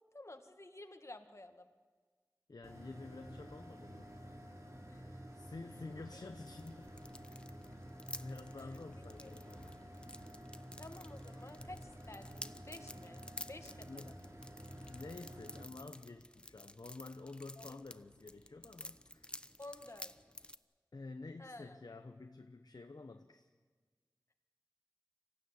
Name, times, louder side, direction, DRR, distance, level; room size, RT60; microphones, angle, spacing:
voice 1, 0.1-1.7 4.9-5.2 6.1-6.3 9.2-9.3 10.8-14.1 17.6-17.8 19.6-20.1 21.4-21.8, left 2 dB, 45° left, 6 dB, 1.8 m, -52 dB
voice 2, 2.5-4.1 5.3-6.9 8.2-9.8 13.9-14.2 14.7-19.3 20.9-23.5, left 3 dB, 70° left, 6 dB, 1.0 m, -50 dB
sound 1, 2.6-15.6, equal, 45° right, 3.6 m, -51 dB
sound 2, 5.5-20.6, left 1 dB, 15° left, 0.8 m, -53 dB
25.0 x 15.5 x 9.8 m, 1.5 s
wide cardioid pair, 55°, 7 cm